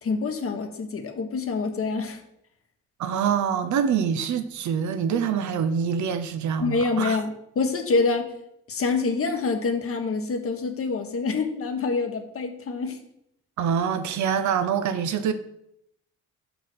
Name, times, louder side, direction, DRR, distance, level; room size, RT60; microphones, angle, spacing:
voice 1, 0.0-2.2 6.6-8.3 8.7-13.0, left 4 dB, 50° left, 1.3 m, -26 dB
voice 2, 3.0-7.2 13.6-15.3, right 7 dB, 70° right, 0.8 m, -25 dB
5.8 x 5.4 x 6.2 m
cardioid pair, 90°, 30 cm